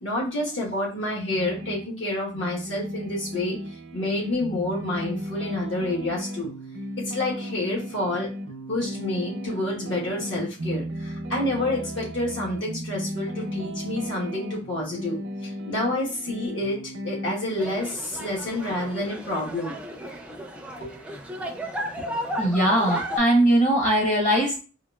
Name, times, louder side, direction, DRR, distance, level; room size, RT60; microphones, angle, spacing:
voice 1, 0.0-3.6 3.9-6.5 7.0-8.3 8.7-19.8 20.8-20.9, left 1 dB, 75° left, -4 dB, 1.3 m, -29 dB
sound 1, 1.3-1.9 2.3-17.3, equal, 75° right, 0.6 m, -35 dB
sound 2, 17.6-23.2, equal, 5° right, 0.4 m, -34 dB
voice 2, 22.4-24.6, right 1 dB, 40° left, 0 dB, 0.9 m, -20 dB
3.8 x 2.5 x 2.3 m, 0.35 s
head